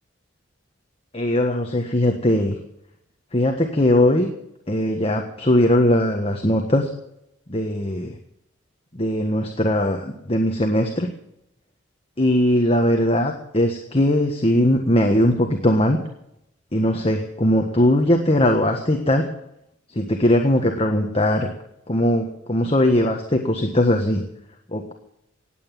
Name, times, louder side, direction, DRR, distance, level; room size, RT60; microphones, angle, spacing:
voice 1, 1.1-2.6 3.3-4.3 4.7-6.9 7.5-8.2 8.9-11.1 12.2-16.0 16.7-19.3 19.9-21.5 21.9-24.2 24.7-24.9, left 1 dB, 30° left, 3 dB, 1.5 m, -20 dB
17.5 x 9.3 x 7.5 m, 0.79 s
head